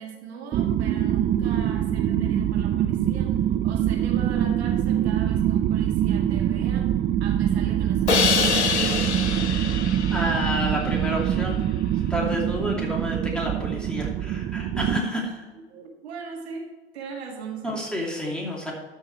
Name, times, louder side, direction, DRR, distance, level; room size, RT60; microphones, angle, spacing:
voice 1, 0.0-6.9 7.2-8.9 15.5-17.8, right 5 dB, 70° right, 1 dB, 1.9 m, -39 dB
sound 1, 0.5-15.0, right 10 dB, 25° right, 0.5 m, -24 dB
Crash cymbal, 8.1-11.1, left 5 dB, 85° left, 0.7 m, -25 dB
voice 2, 10.1-11.6 12.1-15.5 17.6-18.7, equal, 5° left, -2 dB, 2.7 m, -29 dB
13.0 x 5.5 x 4.6 m, 1.2 s
figure-of-eight pair, 85°, 33 cm